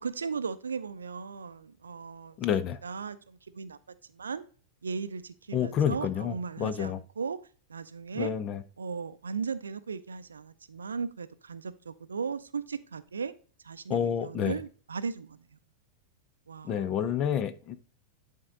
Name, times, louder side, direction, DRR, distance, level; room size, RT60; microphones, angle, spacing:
voice 1, 0.0-2.4 2.8-3.8 4.1-4.4 4.8-7.4 7.7-8.3 8.8-13.3 13.6-15.6 16.5-16.9, right 5 dB, 70° right, 0.5 m, -37 dB
voice 2, 2.4-2.8 5.5-7.0 8.1-8.6 13.9-14.6 16.6-17.7, left 8 dB, 35° left, 0.7 m, -29 dB
11.0 x 3.8 x 3.7 m
figure-of-eight pair, 90°, 0 cm